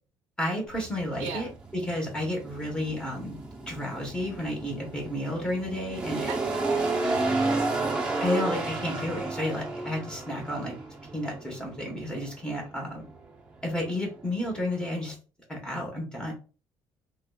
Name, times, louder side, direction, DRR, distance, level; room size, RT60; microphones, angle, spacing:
voice 1, 0.4-3.4 3.7-6.3 8.2-10.7 11.1-13.0 13.6-15.2 15.5-16.3, left 1 dB, 10° left, -1 dB, 1.3 m, -31 dB
sound 1, 0.7-15.1, right 3 dB, 10° right, 0.9 m, -33 dB
voice 2, 6.3-7.6, right 6 dB, 85° right, 2 dB, 0.7 m, -38 dB
3.1 x 3.1 x 2.4 m, 0.35 s
cardioid pair, 145°, 9 cm